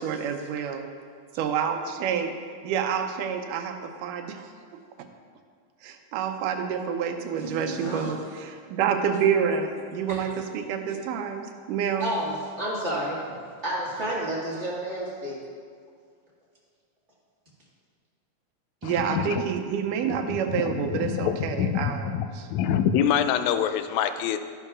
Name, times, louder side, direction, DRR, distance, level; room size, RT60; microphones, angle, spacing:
voice 1, 0.0-0.8 1.4-2.3 2.6-3.7 4.0-4.5 5.8-8.2 8.4-12.1 18.8-22.1 22.3-22.5, right 7 dB, 85° right, 5 dB, 2.3 m, -28 dB
voice 2, 7.4-8.1 10.1-10.2 12.0-15.4, right 1 dB, 30° right, -7 dB, 1.5 m, -31 dB
voice 3, 18.8-19.4 20.1-20.2 20.5-24.4, left 8 dB, 80° left, 9 dB, 1.7 m, -26 dB
12.5 x 11.0 x 2.4 m, 2.1 s
omnidirectional pair, 3.7 m